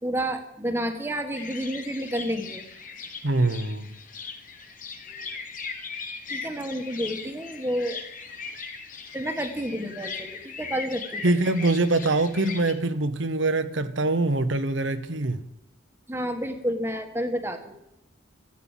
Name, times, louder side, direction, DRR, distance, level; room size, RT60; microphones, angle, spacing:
voice 1, 0.0-2.6 6.3-8.0 9.1-11.3 11.6-11.7 16.1-17.8, equal, 10° right, 6 dB, 1.4 m, -30 dB
sound 1, 1.3-12.7, left 5 dB, 40° left, 1.5 m, -39 dB
voice 2, 3.2-3.9 11.2-15.4, right 2 dB, 70° right, 11 dB, 1.0 m, -24 dB
14.0 x 9.0 x 7.3 m, 0.87 s
head